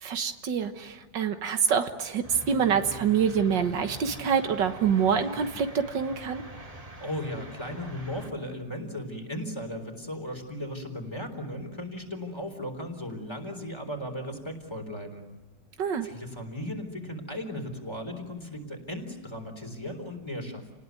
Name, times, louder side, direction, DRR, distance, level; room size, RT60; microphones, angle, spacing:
voice 1, 0.0-6.4 15.8-16.1, right 7 dB, 85° right, 7 dB, 2.0 m, -26 dB
sound 1, 2.2-8.3, right 1 dB, 20° right, 2.5 m, -44 dB
voice 2, 7.0-15.2 16.0-20.7, left 1 dB, 15° left, 4 dB, 3.8 m, -36 dB
29.5 x 19.5 x 9.4 m, 1.1 s
omnidirectional pair, 1.9 m